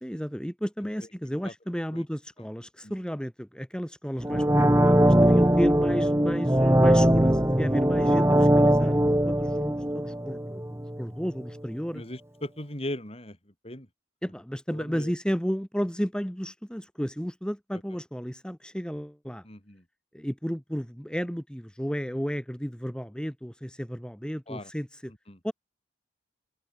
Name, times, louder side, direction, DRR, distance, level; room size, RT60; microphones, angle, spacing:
voice 1, 0.0-12.0 14.2-19.4 20.1-25.1 25.4-25.5, equal, 5° left, 2.8 m, -33 dB
sound 1, 4.2-11.1 11.4-11.5, right 1 dB, 15° right, 2.5 m, -21 dB
voice 2, 11.9-13.9 14.7-15.1 17.7-17.8 19.4-19.8 24.5-24.7 25.1-25.4, left 1 dB, 35° left, 5.8 m, -39 dB
head